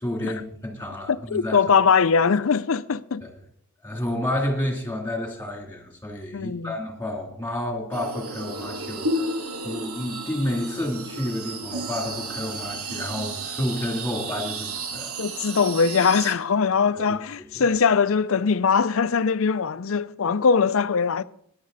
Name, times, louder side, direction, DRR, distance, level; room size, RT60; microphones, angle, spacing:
voice 1, 0.0-1.6 3.8-9.2 9.6-15.1 16.9-17.2 17.5-17.7, left 1 dB, 10° left, 2.9 m, -30 dB
voice 2, 1.1-3.3 6.3-6.7 15.2-21.2, left 5 dB, 65° left, 0.5 m, -21 dB
sound 1, 7.9-16.3, right 2 dB, 85° right, 1.3 m, -32 dB
15.5 x 10.5 x 4.1 m
head